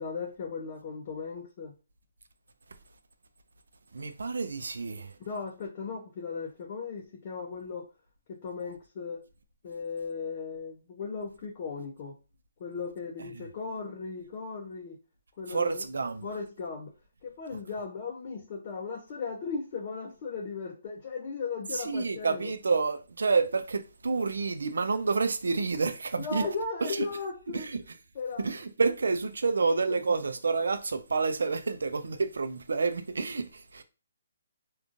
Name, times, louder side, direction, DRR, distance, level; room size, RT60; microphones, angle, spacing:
voice 1, 0.0-1.7 5.2-7.9 8.3-9.2 9.6-12.1 12.6-15.0 15.4-15.8 16.2-16.9 17.2-22.5 26.2-27.7 28.2-28.4 29.9-30.0, left 4 dB, 40° left, 0.5 m, -37 dB
voice 2, 3.9-5.2 13.2-13.4 15.5-16.3 21.7-26.4 26.8-27.1 27.5-27.8 28.4-33.8, right 4 dB, 75° right, 0.4 m, -29 dB
3.7 x 2.3 x 2.4 m
hypercardioid pair, 145°, 0 cm